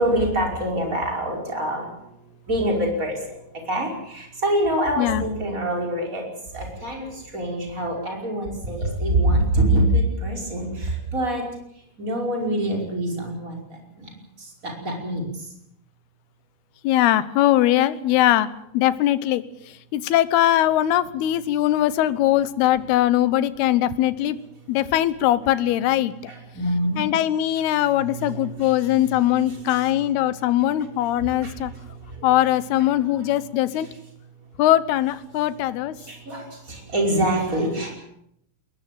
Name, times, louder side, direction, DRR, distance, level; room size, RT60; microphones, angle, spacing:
voice 1, 0.0-2.1 2.5-6.2 6.5-11.4 12.0-13.6 14.0-15.5 26.3-27.1 27.8-29.1 29.5-29.8 31.2-31.6 32.0-32.3 36.0-37.9, right 1 dB, 20° right, 1 dB, 5.5 m, -25 dB
voice 2, 16.8-24.4 24.7-26.1 27.0-31.7 32.2-33.9 34.6-35.9, left 13 dB, 85° left, 15 dB, 3.0 m, -21 dB
21.5 x 21.0 x 7.6 m, 0.75 s
omnidirectional pair, 4.5 m